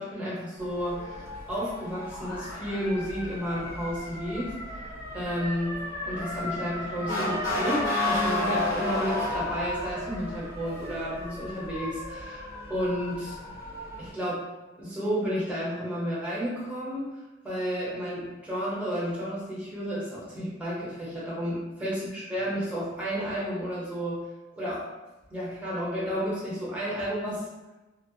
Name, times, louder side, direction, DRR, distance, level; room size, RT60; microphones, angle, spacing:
voice 1, 0.0-5.7 6.1-12.4 12.7-13.3 14.0-14.4 14.8-17.1 17.4-24.2 24.6-24.8 25.3-27.4, equal, 5° right, -8 dB, 0.8 m, -32 dB
Motor vehicle (road) / Siren, 0.6-14.1, left 2 dB, 75° left, 0.8 m, -33 dB
2.4 x 2.1 x 2.6 m, 1.1 s
head